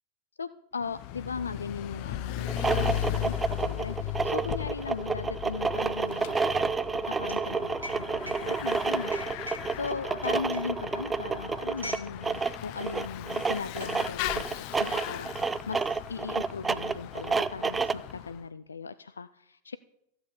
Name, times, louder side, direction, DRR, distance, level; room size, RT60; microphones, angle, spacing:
voice 1, 0.4-6.7 7.0-19.8, left 5 dB, 75° left, 14 dB, 0.4 m, -38 dB
Bicycle / Mechanisms, 0.8-18.4, left 13 dB, 45° left, 0.7 m, -37 dB
sound 1, 2.4-18.1, right 4 dB, 15° right, 0.5 m, -30 dB
sound 2, 5.5-12.1 12.4-12.7 13.4-14.0, left 1 dB, 75° right, 2.7 m, -45 dB
14.5 x 7.9 x 6.9 m, 0.78 s
figure-of-eight pair, 90°, 0 cm